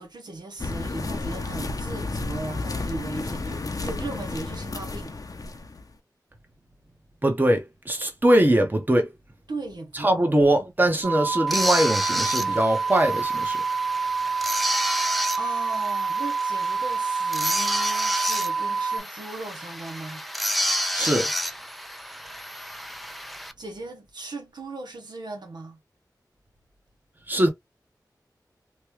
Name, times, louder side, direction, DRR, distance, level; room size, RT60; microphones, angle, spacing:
voice 1, 0.0-5.1 9.5-10.3 15.4-20.2 23.6-25.8, right 2 dB, 75° right, 0.8 m, -37 dB
sound 1, 0.6-5.8, left 3 dB, 55° left, 0.6 m, -32 dB
voice 2, 7.2-9.1 9.9-13.6 20.9-21.3 27.3-27.5, right 1 dB, 25° right, 1.0 m, -22 dB
sound 2, 11.0-19.0, right 4 dB, 55° right, 1.2 m, -27 dB
sound 3, 11.5-23.5, equal, ahead, 0.4 m, -30 dB
3.1 x 2.3 x 3.1 m
wide cardioid pair, 55°, 7 cm